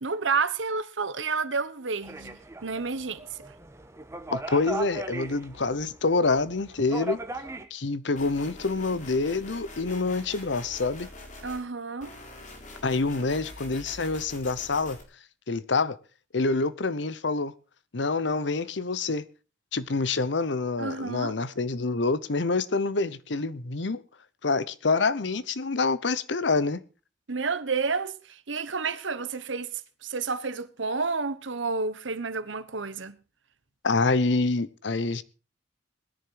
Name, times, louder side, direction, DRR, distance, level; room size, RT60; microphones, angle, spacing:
voice 1, 0.0-3.4 11.4-12.1 20.8-21.3 27.3-29.7 30.0-33.2, right 4 dB, 85° right, 1.2 m, -30 dB
sound 1, 2.0-7.7, right 2 dB, 15° right, 1.3 m, -38 dB
voice 2, 4.3-7.2 7.7-11.1 12.8-15.0 15.5-16.0 16.3-17.5 17.9-19.3 19.7-24.0 24.4-26.8 33.8-35.2, left 3 dB, 70° left, 0.9 m, -26 dB
sound 2, 8.2-11.6 12.0-15.0, left 2 dB, 40° left, 3.5 m, -44 dB
19.5 x 10.5 x 4.8 m
head